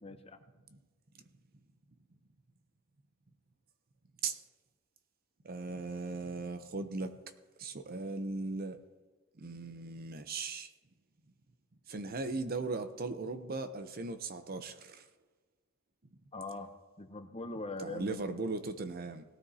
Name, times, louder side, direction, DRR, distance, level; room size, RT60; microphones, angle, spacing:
voice 1, 0.0-0.4 16.3-16.7 17.0-18.4, left 2 dB, 25° left, 0.7 m, -42 dB
voice 2, 5.4-7.1 7.6-8.8 9.4-10.7 11.9-15.0 17.8-19.2, right 3 dB, 45° right, 0.7 m, -38 dB
18.0 x 13.0 x 2.8 m
head